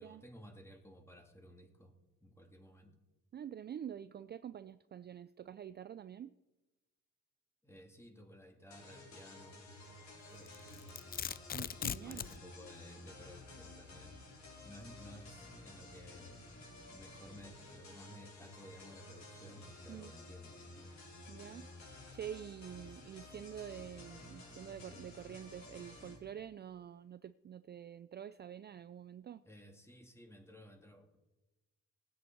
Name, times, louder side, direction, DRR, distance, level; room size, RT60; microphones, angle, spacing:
voice 1, 0.0-1.9 2.2-2.9 7.6-9.6 10.3-11.0 12.0-14.2 14.6-16.5 16.9-20.5 29.4-31.2, equal, 10° left, 2.3 m, -56 dB
voice 2, 3.3-6.4 11.5-12.3 19.9-20.1 21.3-21.7 22.1-29.4, right 9 dB, 35° right, 0.4 m, -47 dB
sound 1, 8.7-26.2, left 2 dB, 65° left, 5.3 m, -53 dB
Domestic sounds home sounds, 10.5-12.4, left 8 dB, 30° left, 0.4 m, -40 dB
19.0 x 9.4 x 4.5 m
cardioid pair, 90°, 30 cm